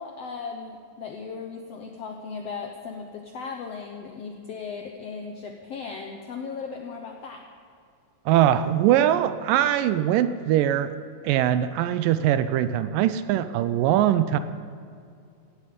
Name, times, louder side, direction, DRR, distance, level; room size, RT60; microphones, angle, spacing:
voice 1, 0.0-7.4, left 5 dB, 75° left, 3 dB, 1.5 m, -37 dB
voice 2, 8.3-11.0 11.2-14.4, right 11 dB, 80° right, 12 dB, 2.1 m, -22 dB
17.5 x 15.5 x 5.2 m, 2.3 s
omnidirectional pair, 4.2 m